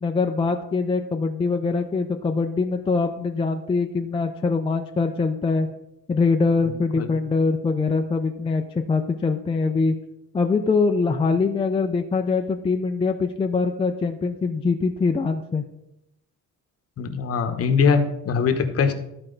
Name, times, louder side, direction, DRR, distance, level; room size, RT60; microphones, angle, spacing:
voice 1, 0.0-5.7 6.1-10.0 10.3-15.6, left 4 dB, 15° left, 4 dB, 0.4 m, -23 dB
voice 2, 17.0-18.9, left 5 dB, 45° left, 8 dB, 0.9 m, -21 dB
13.0 x 4.4 x 3.8 m, 0.83 s
cardioid pair, 150°, 33 cm